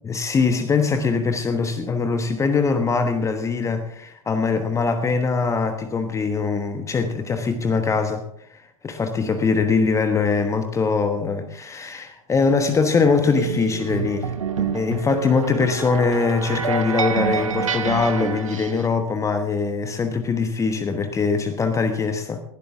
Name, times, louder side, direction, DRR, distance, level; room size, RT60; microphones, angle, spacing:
voice 1, 0.0-8.2 8.5-8.6 8.8-14.3 14.6-22.4, left 4 dB, 15° left, 8 dB, 1.2 m, -22 dB
sound 1, 13.4-18.9, right 6 dB, 70° right, 1.2 m, -27 dB
19.5 x 12.5 x 3.5 m, 0.71 s
figure-of-eight pair, 90°, 17 cm